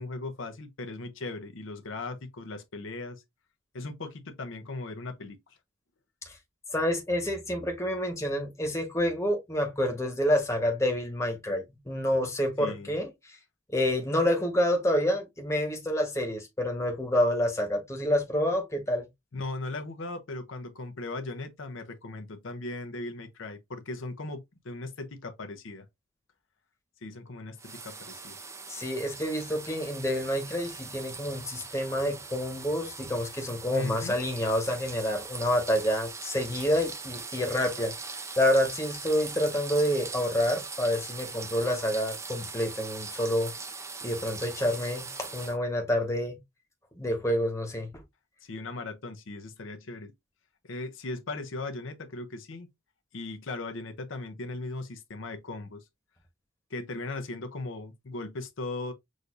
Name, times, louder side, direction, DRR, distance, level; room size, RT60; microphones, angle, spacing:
voice 1, 0.0-3.2 3.7-5.4 12.6-13.0 19.3-25.9 27.0-28.4 33.7-34.2 48.4-50.1 50.6-52.7 53.1-55.8 56.7-58.9, left 2 dB, 70° left, 0.7 m, -38 dB
voice 2, 6.7-13.4 13.7-19.0 28.7-37.9 38.4-43.5 44.0-46.4 47.0-47.9, equal, 15° left, 1.0 m, -28 dB
sound 1, 27.6-45.6, right 4 dB, 15° right, 0.5 m, -41 dB
6.3 x 2.6 x 2.5 m
head